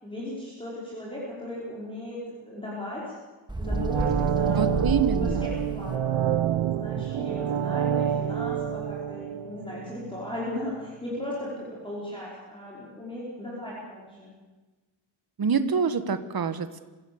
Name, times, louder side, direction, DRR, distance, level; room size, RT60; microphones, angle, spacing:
voice 1, 0.0-3.2 3.6-6.2 6.8-14.3, left 1 dB, 10° left, -6 dB, 5.3 m, -37 dB
Bird, 3.5-5.9, right 1 dB, 10° right, 1.9 m, -31 dB
sound 1, 3.6-10.5 10.8-10.9, right 9 dB, 85° right, 1.0 m, -28 dB
voice 2, 4.5-5.5 15.4-16.8, right 6 dB, 50° right, 11 dB, 1.4 m, -26 dB
26.0 x 16.0 x 7.2 m, 1.2 s
wide cardioid pair, 170°, 47 cm